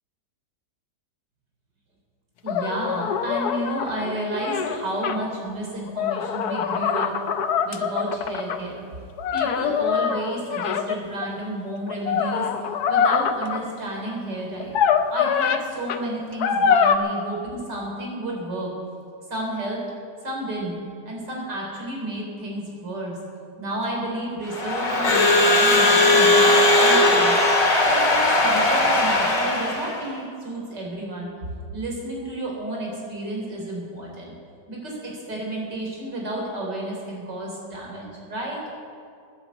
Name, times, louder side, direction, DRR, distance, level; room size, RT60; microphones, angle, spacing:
voice 1, 2.4-7.1 7.6-8.8 9.3-12.5 12.9-14.7 15.1-18.7 19.3-19.8 20.2-20.8 21.1-23.2 23.6-26.5 26.8-27.4 27.8-31.3 31.7-34.3 34.7-38.6, right 1 dB, 75° right, -2 dB, 4.4 m, -31 dB
sound 1, 2.5-5.2 5.9-8.6 9.2-11.3 11.9-13.6 14.6-15.6 15.9-16.0 16.4-17.0, left 7 dB, 65° left, 1.3 m, -23 dB
Crowd / Alarm, 24.5-30.0, left 2 dB, 50° left, 2.4 m, -18 dB
16.0 x 10.5 x 8.4 m, 2.4 s
omnidirectional pair, 1.9 m